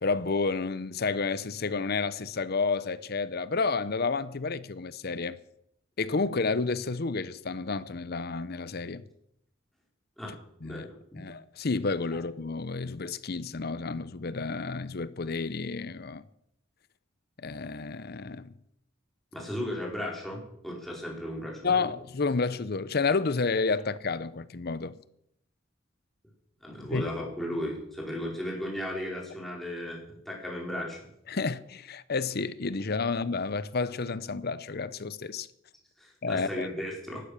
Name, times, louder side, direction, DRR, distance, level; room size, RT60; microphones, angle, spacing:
voice 1, 0.0-5.4 6.0-9.0 10.6-10.9 11.1-16.2 17.4-18.5 21.6-25.0 26.9-27.1 31.3-35.5 36.2-36.7, left 4 dB, 50° left, 0.7 m, -30 dB
voice 2, 10.6-11.3 19.3-21.8 26.6-31.0 36.0-37.2, left 1 dB, ahead, 4.7 m, -36 dB
15.5 x 12.0 x 6.6 m
head